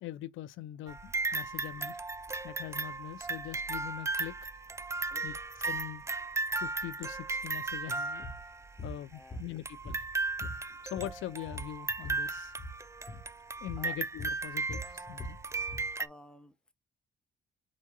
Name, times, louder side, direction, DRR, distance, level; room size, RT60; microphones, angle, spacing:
voice 1, 0.0-4.5 5.2-5.4 5.6-6.0 6.6-8.5 8.8-10.0 10.4-10.5 10.8-12.5 13.6-15.4, left 13 dB, 85° left, 0.6 m, -42 dB
sound 1, 0.9-8.8 9.6-16.1, right 3 dB, 15° right, 0.4 m, -36 dB
sound 2, 8.2-8.4 8.8-9.0 9.3-10.1 10.4-12.2 12.5-12.8 13.1-13.3 13.7-13.9 14.2-15.9, left 1 dB, 30° left, 1.7 m, -42 dB
voice 2, 9.1-9.5 13.8-14.0 16.0-16.7, left 1 dB, 5° left, 1.0 m, -53 dB
4.6 x 4.2 x 2.3 m
cardioid pair, 90°, 20 cm